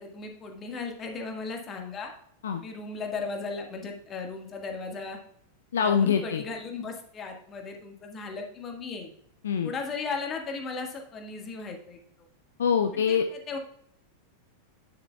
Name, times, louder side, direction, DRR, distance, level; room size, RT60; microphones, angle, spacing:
voice 1, 0.0-2.1 2.6-5.2 5.8-9.1 9.6-12.0 13.1-13.2 13.5-13.6, left 4 dB, 25° left, 3 dB, 1.6 m, -36 dB
voice 2, 5.7-6.4 9.4-9.7 12.6-13.3, left 7 dB, 65° left, 7 dB, 0.5 m, -24 dB
9.5 x 7.3 x 2.3 m, 0.67 s
figure-of-eight pair, 90°, 0 cm